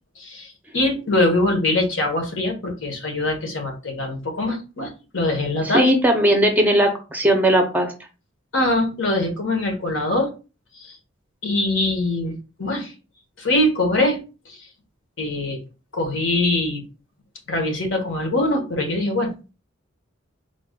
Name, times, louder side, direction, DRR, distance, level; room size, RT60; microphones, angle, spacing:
voice 1, 0.2-6.0 8.5-10.3 10.7-11.0 11.4-12.9 13.4-14.2 14.5-14.6 15.2-15.6 15.9-16.8 17.5-19.3, left 1 dB, 70° left, 3 dB, 1.1 m, -23 dB
voice 2, 5.6-7.9, right 1 dB, 10° right, 4 dB, 0.6 m, -18 dB
3.8 x 2.4 x 3.6 m, 0.32 s
head